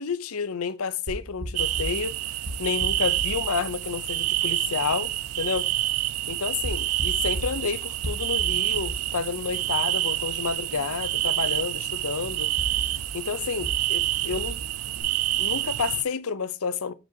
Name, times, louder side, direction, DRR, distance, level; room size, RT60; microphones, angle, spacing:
voice 1, 0.0-2.2 2.6-5.7 6.3-12.5 13.1-14.6 15.4-16.9, left 5 dB, 70° left, 0.7 m, -30 dB
sound 1, 1.1-15.0, equal, 45° right, 1.7 m, -38 dB
sound 2, 1.5-16.0, right 16 dB, 80° right, 0.4 m, -28 dB
8.4 x 5.0 x 2.8 m
head